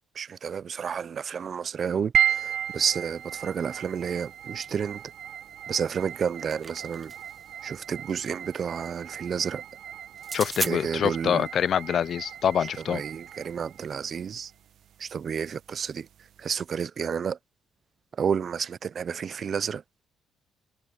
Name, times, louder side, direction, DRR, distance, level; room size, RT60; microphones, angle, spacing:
voice 1, 0.2-5.0 5.7-7.1 7.6-9.6 10.6-11.5 12.9-14.5 15.0-16.1 16.4-17.4 18.2-19.8, right 7 dB, 50° right, 0.5 m, -30 dB
sound 1, 2.1-16.6, right 9 dB, 70° right, 1.2 m, -35 dB
sound 2, 6.1-7.4 10.2-10.7, right 4 dB, 30° right, 0.9 m, -34 dB
voice 2, 10.3-13.0, left 8 dB, 60° left, 0.4 m, -25 dB
cardioid pair, 90°, 0 cm